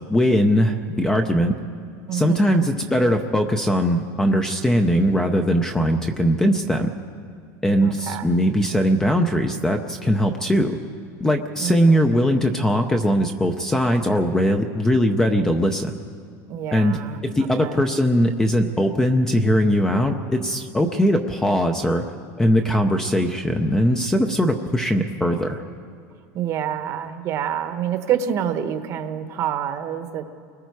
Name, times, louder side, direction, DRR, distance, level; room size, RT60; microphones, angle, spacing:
voice 1, 0.1-1.5 2.1-6.9 7.6-10.8 11.2-15.9 16.7-17.0 17.3-22.0 22.4-25.6, equal, 5° left, 5 dB, 0.6 m, -20 dB
voice 2, 2.1-2.6 7.8-8.3 11.6-12.0 16.5-17.2 17.6-17.8 26.3-30.2, right 9 dB, 35° right, 9 dB, 1.0 m, -27 dB
29.0 x 21.0 x 4.7 m, 2.2 s
cardioid pair, 180°, 9 cm